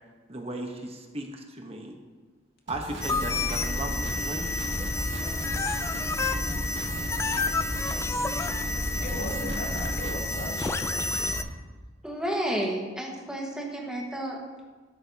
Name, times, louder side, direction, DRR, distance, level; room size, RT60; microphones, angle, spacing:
voice 1, 0.3-1.9 2.7-4.5, right 1 dB, 30° right, 2 dB, 1.0 m, -36 dB
sound 1, 2.7-11.4, right 1 dB, 70° right, 1.7 m, -38 dB
sound 2, 3.0-10.1, equal, 75° left, 4.0 m, -35 dB
sound 3, 3.0-11.4, left 3 dB, 15° left, 0.4 m, -30 dB
voice 2, 9.0-11.1, left 1 dB, 55° left, -1 dB, 2.1 m, -37 dB
voice 3, 12.0-14.4, right 1 dB, 5° right, -2 dB, 1.5 m, -31 dB
12.5 x 12.5 x 2.8 m, 1.3 s
head